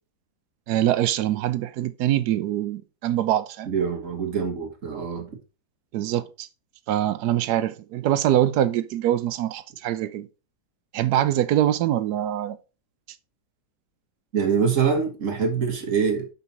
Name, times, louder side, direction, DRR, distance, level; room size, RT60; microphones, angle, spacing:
voice 1, 0.7-3.7 5.9-6.5 6.9-10.3 10.9-12.6, right 12 dB, 75° right, 1.1 m, -24 dB
voice 2, 3.7-5.4 14.3-16.3, right 6 dB, 45° right, 1.6 m, -24 dB
5.7 x 5.4 x 4.0 m
omnidirectional pair, 1.9 m